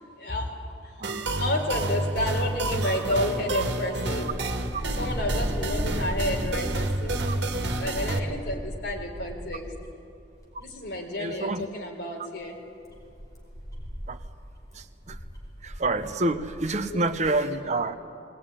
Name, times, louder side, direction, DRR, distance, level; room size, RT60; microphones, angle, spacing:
voice 1, 0.2-1.0 1.4-4.3 5.0-9.7 10.6-12.6 16.9-17.5, left 1 dB, 65° left, 1 dB, 4.1 m, -31 dB
sound 1, 1.0-8.2, right 2 dB, 75° right, 1.8 m, -29 dB
sound 2, 2.5-10.0 10.4-10.8 11.4-11.5 12.3-17.3, equal, 20° left, 4.7 m, -37 dB
voice 2, 11.2-11.7 14.1-14.2 14.7-15.2 15.6-18.0, right 2 dB, 40° right, 9 dB, 0.9 m, -28 dB
20.5 x 19.5 x 9.9 m, 2.5 s
head